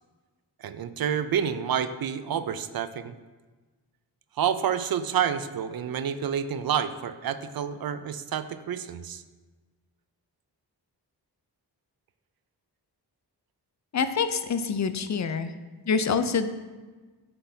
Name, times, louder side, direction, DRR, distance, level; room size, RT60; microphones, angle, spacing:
voice 1, 0.6-3.1 4.4-9.2, right 8 dB, 55° right, 12 dB, 0.5 m, -29 dB
voice 2, 13.9-15.5 15.9-16.5, left 5 dB, 40° left, 10 dB, 0.5 m, -26 dB
9.7 x 3.9 x 2.7 m, 1.3 s
cardioid pair, 45°, 42 cm